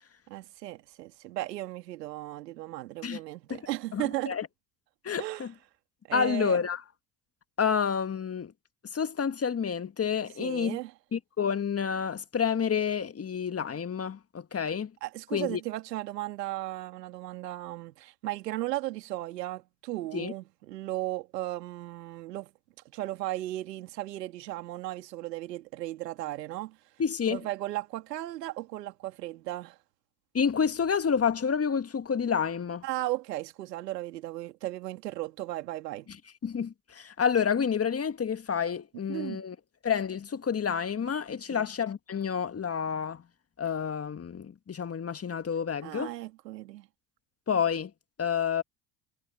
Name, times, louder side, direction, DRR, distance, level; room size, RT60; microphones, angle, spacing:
voice 1, 0.3-4.4 5.2-5.5 6.1-6.6 10.4-10.9 15.0-22.5 22.9-26.8 27.3-29.8 32.8-36.1 39.1-39.4 41.5-41.7 45.8-46.9, right 16 dB, 80° right, 2.6 m, -36 dB
voice 2, 3.9-4.5 5.0-5.5 6.1-6.8 7.6-8.5 8.9-10.8 11.1-14.9 15.3-15.6 20.1-20.3 27.0-27.4 30.3-32.8 36.4-39.6 39.8-43.2 43.6-46.1 47.5-47.9 48.2-48.6, left 7 dB, 30° left, 1.8 m, -29 dB
hypercardioid pair, 60°, 48 cm